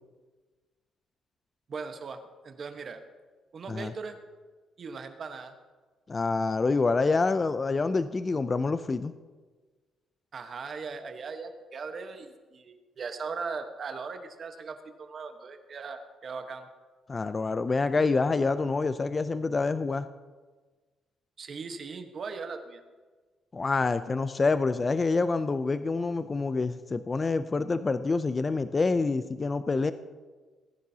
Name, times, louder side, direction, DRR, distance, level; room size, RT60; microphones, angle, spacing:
voice 1, 1.7-3.0 3.5-4.2 4.8-5.5 10.3-16.7 21.4-22.8, right 5 dB, 50° right, 6 dB, 1.2 m, -39 dB
voice 2, 6.1-9.1 17.1-20.1 23.5-29.9, left 3 dB, 30° left, 12 dB, 0.4 m, -27 dB
18.5 x 10.5 x 2.8 m, 1.4 s
cardioid pair, 90°, 0 cm